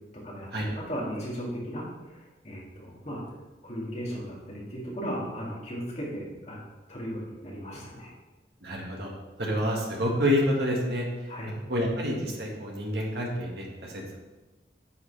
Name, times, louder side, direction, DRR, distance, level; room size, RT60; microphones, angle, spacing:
voice 1, 0.2-3.2 3.6-6.6 6.9-8.1 11.3-11.5, equal, 35° left, -5 dB, 2.6 m, -36 dB
voice 2, 8.6-9.1 9.4-11.0 11.7-14.2, equal, 65° right, -1 dB, 1.9 m, -28 dB
9.4 x 7.4 x 3.4 m, 1.2 s
head